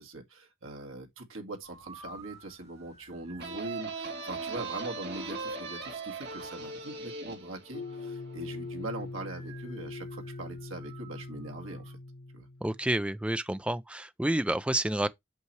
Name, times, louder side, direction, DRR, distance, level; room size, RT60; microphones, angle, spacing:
voice 1, 0.0-11.9 12.3-12.5, right 2 dB, 75° right, 2.0 m, -42 dB
sound 1, 1.6-3.6 9.3-12.0, right 3 dB, 35° right, 5.0 m, -53 dB
sound 2, 3.4-8.8, right 3 dB, 55° right, 3.2 m, -39 dB
sound 3, 7.7-12.9, left 3 dB, 55° left, 0.7 m, -42 dB
voice 2, 12.6-15.1, right 1 dB, 5° right, 0.4 m, -29 dB
8.2 x 5.8 x 3.2 m
head